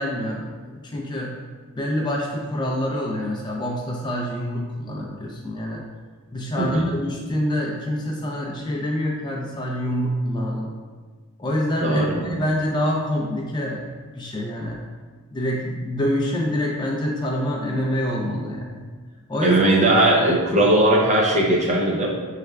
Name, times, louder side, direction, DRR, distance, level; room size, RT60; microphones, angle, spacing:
voice 1, 0.0-1.4 1.8-5.8 6.3-10.7 11.4-13.9 14.2-14.8 15.3-18.9 19.3-19.6, equal, 20° left, -2 dB, 0.4 m, -26 dB
voice 2, 6.6-6.9 11.8-12.4 19.4-22.1, right 1 dB, 30° right, -1 dB, 0.5 m, -19 dB
5.9 x 3.2 x 2.2 m, 1.5 s
head